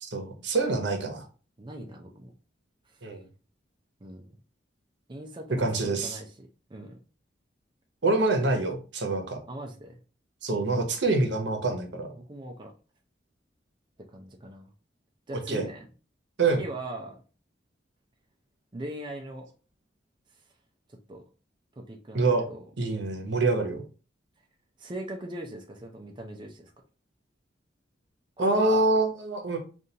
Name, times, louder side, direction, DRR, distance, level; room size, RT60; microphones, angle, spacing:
voice 1, 0.0-1.2 3.0-3.2 5.6-6.2 8.0-9.4 10.4-12.1 15.5-15.6 16.4-16.6 22.1-22.5 22.8-23.8 28.4-29.6, right 3 dB, 70° right, 4 dB, 0.9 m, -26 dB
voice 2, 1.6-2.3 2.9-3.0 4.0-4.3 5.1-7.0 9.5-10.0 12.2-12.7 14.1-14.7 15.3-15.9 16.5-17.2 18.7-19.5 20.9-21.2 21.8-22.7 24.8-26.7 28.4-28.9, right 1 dB, 25° right, 1 dB, 0.5 m, -40 dB
5.1 x 2.5 x 2.8 m, 0.36 s
head